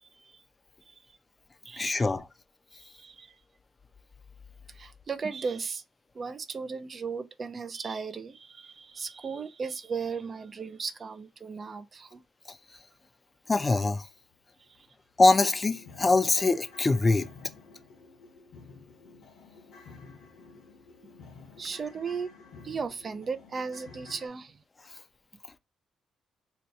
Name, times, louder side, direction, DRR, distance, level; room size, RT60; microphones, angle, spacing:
voice 1, 0.0-0.4 0.9-1.0 1.6-2.1 2.8-3.4 4.7-5.8 6.1-12.2 14.6-14.9 21.6-22.3 22.6-24.6, right 5 dB, 40° right, 0.4 m, -36 dB
voice 2, 1.8-2.3 12.5-12.6 13.5-14.1 15.2-17.3, left 3 dB, 25° left, 0.4 m, -23 dB
sound 1, 14.3-14.4 14.8-14.9 15.2-24.3, left 4 dB, 80° left, 1.0 m, -51 dB
2.8 x 2.3 x 3.9 m
cardioid pair, 90°, 0 cm